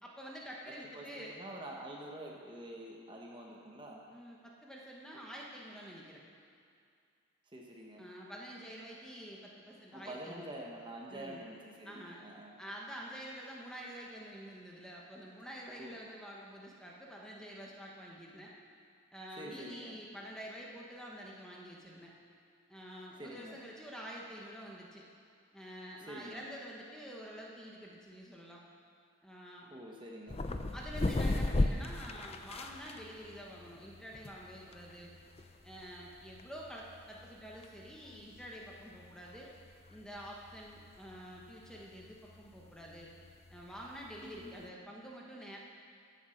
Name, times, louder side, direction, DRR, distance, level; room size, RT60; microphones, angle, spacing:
voice 1, 0.0-1.4 4.1-6.2 8.0-10.6 11.1-11.4 11.8-12.2 12.6-18.5 19.1-22.1 22.7-25.0 25.5-28.6 29.2-29.7 30.7-35.1 35.6-39.5 39.9-43.1 43.5-45.6, equal, 5° left, -3 dB, 1.2 m, -48 dB
voice 2, 0.9-4.0 7.5-8.1 9.9-12.5 15.8-16.0 19.4-20.0 23.2-23.6 26.0-26.4 29.7-30.4 44.2-44.6, right 1 dB, 20° right, -1 dB, 1.2 m, -47 dB
sound 1, 30.3-44.7, left 2 dB, 25° left, 0.5 m, -38 dB
15.0 x 8.2 x 5.8 m, 2.4 s
head